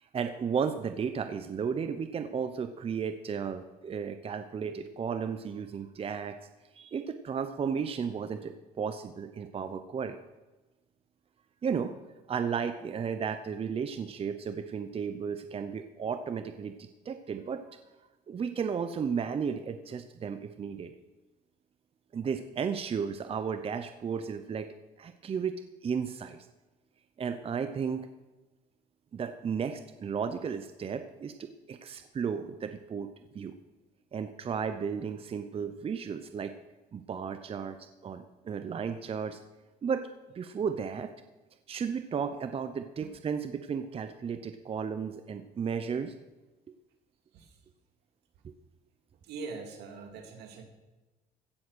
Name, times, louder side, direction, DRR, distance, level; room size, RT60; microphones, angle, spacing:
voice 1, 0.1-6.4 6.7-10.2 11.6-11.9 12.3-17.8 18.3-20.9 22.1-24.7 25.0-25.5 25.8-26.4 27.2-28.1 29.1-33.1 33.3-33.5 34.1-36.5 36.9-37.8 38.0-39.4 39.8-40.0 40.3-41.1 41.7-46.1 48.4-48.5, right 6 dB, 35° right, 9 dB, 0.8 m, -34 dB
voice 2, 49.2-50.6, right 4 dB, 80° right, 5 dB, 2.2 m, -42 dB
16.0 x 7.6 x 6.3 m, 1.1 s
cardioid pair, 110°, 17 cm